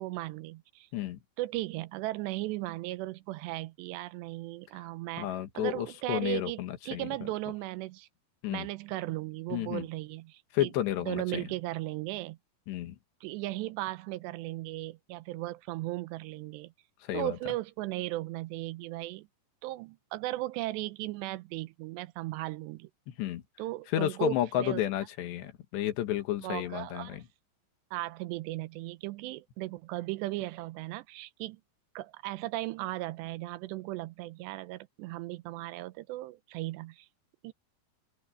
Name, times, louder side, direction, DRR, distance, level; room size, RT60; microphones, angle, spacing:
voice 1, 0.0-0.9 1.4-5.3 5.5-8.1 8.5-10.7 11.0-12.4 13.2-16.7 17.1-19.3 19.6-22.9 23.6-24.8 26.4-27.2 27.9-31.6 32.0-37.1 37.4-37.5, right 18 dB, 90° right, 2.9 m, -36 dB
voice 2, 5.2-7.1 8.4-8.7 9.5-9.9 10.5-11.4 12.7-13.0 17.1-17.4 23.2-23.4 23.9-27.2, left 12 dB, 80° left, 3.7 m, -31 dB
open air
omnidirectional pair, 4.9 m